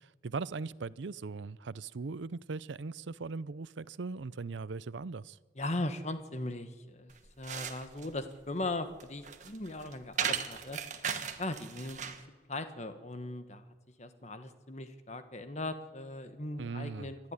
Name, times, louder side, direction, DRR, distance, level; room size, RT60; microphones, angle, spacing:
voice 1, 0.2-5.4 16.6-17.1, right 4 dB, 80° right, 0.6 m, -39 dB
voice 2, 5.5-10.8 11.4-12.0 12.5-13.6 14.0-17.2, left 2 dB, 35° left, 1.3 m, -38 dB
sound 1, 7.1-12.3, right 7 dB, 40° right, 1.4 m, -37 dB
27.0 x 12.0 x 9.7 m
head